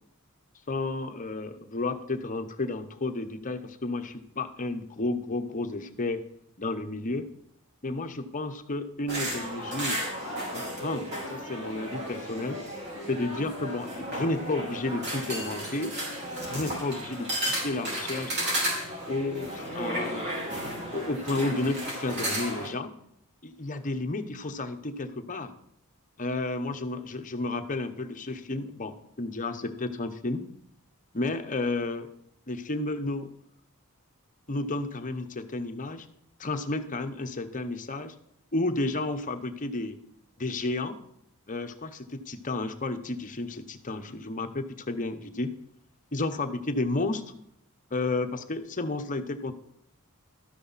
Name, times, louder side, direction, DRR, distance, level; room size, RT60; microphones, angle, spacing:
voice 1, 0.7-6.2 6.6-7.3 7.8-10.0 10.5-12.6 13.1-15.9 16.5-18.4 19.1-20.3 20.9-22.9 23.4-25.5 26.2-30.4 31.1-32.1 32.5-33.3 34.5-36.1 36.4-38.1 38.5-40.0 40.4-41.0 41.5-45.5 46.1-47.3 47.9-49.5, left 2 dB, 35° left, 7 dB, 0.9 m, -32 dB
sound 1, 9.1-22.7, equal, 50° right, 4.7 m, -33 dB
13.0 x 9.9 x 4.1 m, 0.72 s
head